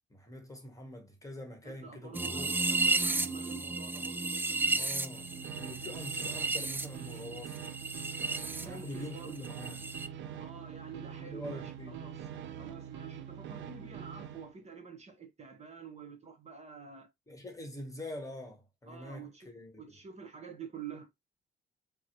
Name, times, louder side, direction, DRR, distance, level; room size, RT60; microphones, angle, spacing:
voice 1, 0.1-2.5 4.7-5.3 5.6-7.6 8.6-9.9 11.2-12.0 17.3-20.0, left 1 dB, 15° left, 1.1 m, -44 dB
voice 2, 1.6-5.0 8.6-9.4 10.4-12.3 12.5-17.1 18.9-19.5 19.8-21.1, right 6 dB, 35° right, 0.9 m, -48 dB
sound 1, 2.1-8.7 8.9-10.1, right 3 dB, 10° right, 0.3 m, -33 dB
sound 2, 4.9-14.5, right 9 dB, 70° right, 0.5 m, -44 dB
4.0 x 2.0 x 2.9 m
cardioid pair, 90°, 20 cm